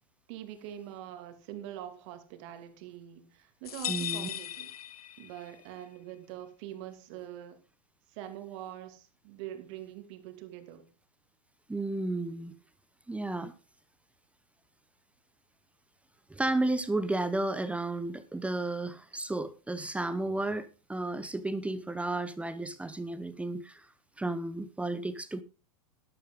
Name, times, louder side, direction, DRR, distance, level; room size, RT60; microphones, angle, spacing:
voice 1, 0.3-4.7 5.2-7.6 8.1-10.8, right 11 dB, 55° right, 8 dB, 2.7 m, -44 dB
sound 1, 3.7-5.6, left 11 dB, 90° left, 0.5 m, -37 dB
voice 2, 3.9-4.3 11.7-12.5 13.1-13.5 16.3-23.9 24.2-25.4, right 2 dB, 5° right, 12 dB, 0.9 m, -33 dB
12.0 x 11.5 x 3.8 m, 0.31 s
hypercardioid pair, 115°, 19 cm